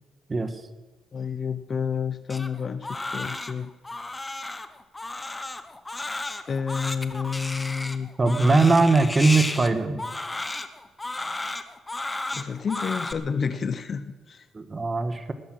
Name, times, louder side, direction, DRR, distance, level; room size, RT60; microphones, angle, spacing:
voice 1, 0.3-0.6 8.2-10.0 14.5-15.3, right 3 dB, 30° right, 9 dB, 1.5 m, -21 dB
voice 2, 1.1-3.7 6.5-8.8 12.3-14.4, left 6 dB, 45° left, 12 dB, 0.8 m, -30 dB
Crying sobbing, 2.3-13.1, left 2 dB, 15° left, 1.0 m, -33 dB
18.5 x 11.0 x 6.1 m, 1.2 s
cardioid pair, 90°, 0 cm